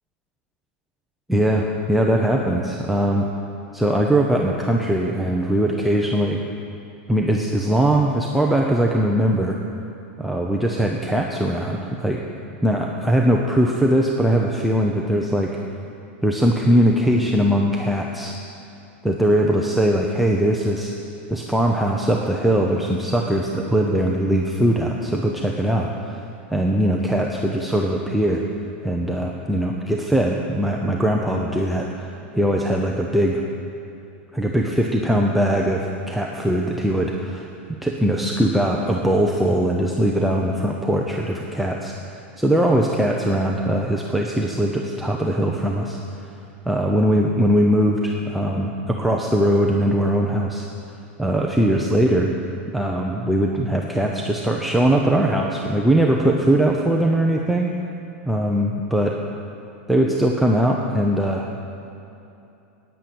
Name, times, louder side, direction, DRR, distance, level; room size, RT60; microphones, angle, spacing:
voice 1, 1.3-3.2 3.7-6.4 7.1-9.6 10.2-12.2 12.6-15.6 16.2-18.4 19.0-20.9 21.3-26.2 26.5-28.4 28.8-33.4 34.3-37.5 37.8-41.9 42.4-46.0 46.6-50.7 51.2-52.3 52.7-57.7 58.3-59.2 59.9-61.5, right 1 dB, ahead, -1 dB, 0.7 m, -20 dB
10.0 x 9.3 x 8.6 m, 2.8 s
supercardioid pair, 150°, 6 cm